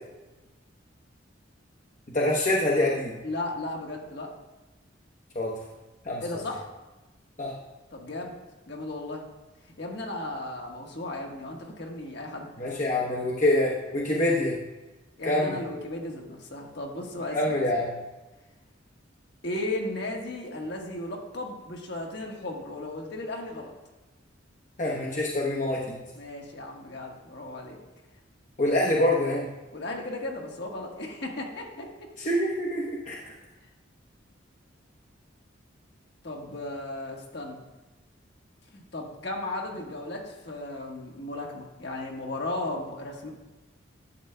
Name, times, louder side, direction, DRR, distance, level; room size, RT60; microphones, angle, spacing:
voice 1, 2.1-3.1 5.3-5.5 6.0-6.4 7.4-7.5 12.6-14.6 15.2-15.6 17.3-17.9 24.8-26.0 28.6-29.5 32.2-33.2, left 1 dB, 40° left, -3 dB, 0.9 m, -25 dB
voice 2, 3.2-4.3 6.2-6.7 7.9-8.4 8.7-9.3 9.8-12.5 15.2-17.6 19.4-23.7 26.1-27.8 29.7-31.9 36.2-37.6 38.7-43.3, left 2 dB, 60° left, 0 dB, 1.4 m, -35 dB
11.0 x 7.8 x 2.2 m, 1.1 s
head